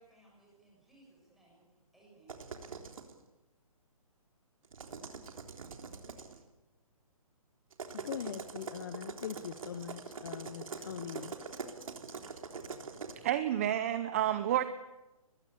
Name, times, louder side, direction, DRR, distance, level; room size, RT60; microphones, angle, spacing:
voice 1, 0.0-1.7 1.9-2.4, right 2 dB, ahead, -4 dB, 7.3 m, -62 dB
sound 1, 2.3-3.1 4.6-6.4 7.7-13.1, right 5 dB, 65° right, 3.6 m, -44 dB
voice 2, 7.9-11.3, left 8 dB, 35° left, 12 dB, 0.9 m, -42 dB
voice 3, 13.2-14.6, right 11 dB, 25° right, 12 dB, 0.8 m, -29 dB
24.0 x 21.5 x 8.4 m, 1.0 s
hypercardioid pair, 165°, 19 cm